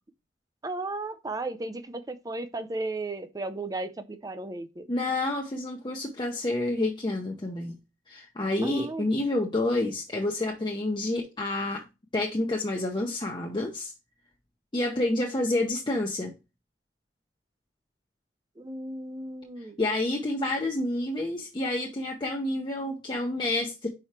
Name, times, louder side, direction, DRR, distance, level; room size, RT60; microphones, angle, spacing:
voice 1, 0.6-4.9 8.6-9.1 9.3-9.4 18.6-19.8, right 2 dB, 20° right, 0.5 m, -35 dB
voice 2, 4.9-7.8 8.1-11.8 12.1-13.9 14.7-16.3 19.8-23.9, left 2 dB, 25° left, 0.7 m, -29 dB
4.9 x 4.6 x 4.3 m
head